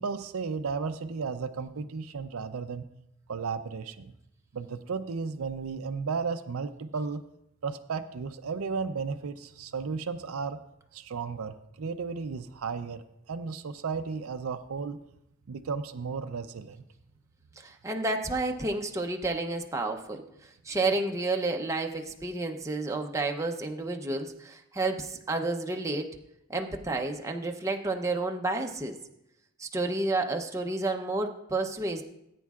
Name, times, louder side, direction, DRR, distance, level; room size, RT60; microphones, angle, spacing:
voice 1, 0.0-2.9 3.3-4.1 4.5-7.2 7.6-10.6 10.9-15.0 15.5-16.8, right 5 dB, 90° right, 9 dB, 0.5 m, -34 dB
voice 2, 17.6-20.2 20.6-26.1 26.5-29.0 29.6-32.0, right 2 dB, 15° right, 2 dB, 0.7 m, -30 dB
18.0 x 9.2 x 2.4 m, 0.82 s
head